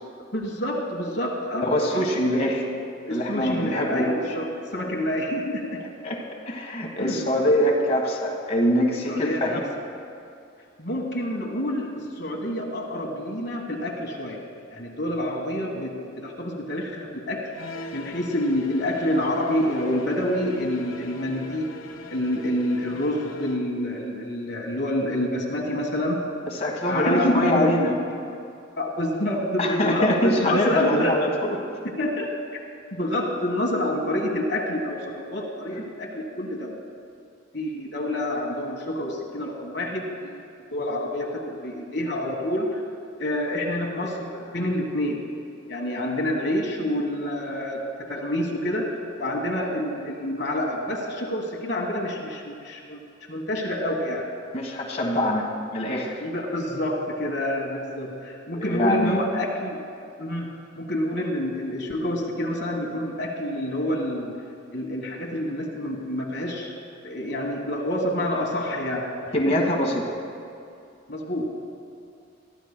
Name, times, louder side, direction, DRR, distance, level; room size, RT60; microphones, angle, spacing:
voice 1, 0.3-2.1 3.1-5.9 7.0-7.3 9.1-9.7 10.8-14.4 14.7-17.5 17.9-21.7 22.1-26.4 26.8-28.2 28.8-31.1 32.0-32.3 32.9-36.8 37.5-40.4 40.7-42.9 43.2-45.3 45.7-53.0 53.3-54.3 56.2-59.9 60.2-64.4 64.7-66.7 67.0-69.2 69.5-69.6 71.1-71.5, left 1 dB, 55° left, 0 dB, 1.4 m, -28 dB
voice 2, 1.5-2.7 3.1-4.1 6.0-6.2 6.5-9.6 26.6-27.9 29.6-31.6 54.5-56.2 58.5-59.2 69.3-70.1, left 1 dB, 30° left, -2 dB, 1.4 m, -23 dB
sound 1, 17.5-23.7, left 2 dB, 85° left, 1.1 m, -41 dB
23.5 x 13.5 x 2.2 m, 2.5 s
head